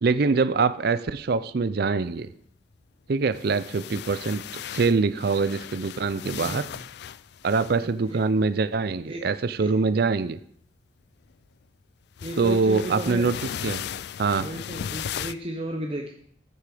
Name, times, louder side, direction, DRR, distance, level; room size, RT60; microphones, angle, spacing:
voice 1, 0.0-2.3 3.1-4.4 4.7-6.7 7.4-10.4 12.4-13.8 14.2-14.5, right 4 dB, 55° right, 13 dB, 0.5 m, -24 dB
sound 1, 3.2-8.2 10.0-10.3 12.2-15.3, left 9 dB, 60° left, 0.3 m, -37 dB
voice 2, 6.3-6.8 8.1-8.2 9.1-9.2 9.6-9.7 12.2-13.4 14.3-16.1, right 1 dB, 30° right, 2 dB, 0.8 m, -34 dB
14.0 x 6.7 x 5.0 m, 0.68 s
head